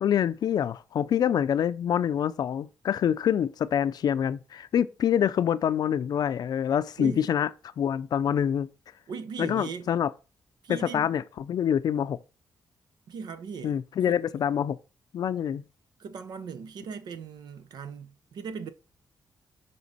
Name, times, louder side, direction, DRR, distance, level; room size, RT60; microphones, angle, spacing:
voice 1, 0.0-7.5 7.8-8.7 9.4-10.1 10.7-12.2 13.6-14.8 15.1-15.6, left 9 dB, 70° left, 0.4 m, -26 dB
voice 2, 9.1-9.9 10.6-11.1 13.1-13.8 16.0-18.7, right 5 dB, 80° right, 0.7 m, -38 dB
6.1 x 3.8 x 4.1 m
cardioid pair, 85°, 7 cm